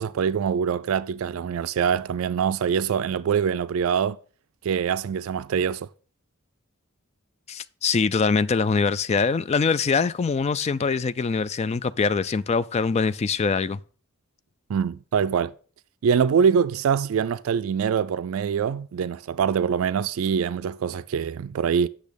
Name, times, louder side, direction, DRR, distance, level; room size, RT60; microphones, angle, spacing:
voice 1, 0.0-4.2 4.6-5.9 14.7-15.5 16.0-21.9, right 7 dB, 70° right, 0.3 m, -24 dB
voice 2, 7.5-13.8, left 5 dB, 30° left, 0.3 m, -23 dB
8.4 x 6.4 x 5.1 m
head